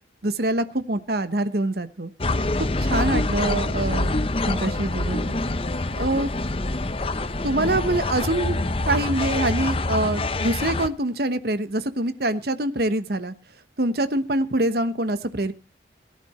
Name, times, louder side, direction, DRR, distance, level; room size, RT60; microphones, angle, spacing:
voice 1, 0.2-2.1 2.6-4.1 4.5-5.3 5.9-6.3 7.4-13.3 13.8-15.5, right 1 dB, 60° right, 12 dB, 1.2 m, -25 dB
sound 1, 2.2-10.9, left 2 dB, 30° left, 0.8 m, -25 dB
18.5 x 11.0 x 4.4 m, 0.32 s
head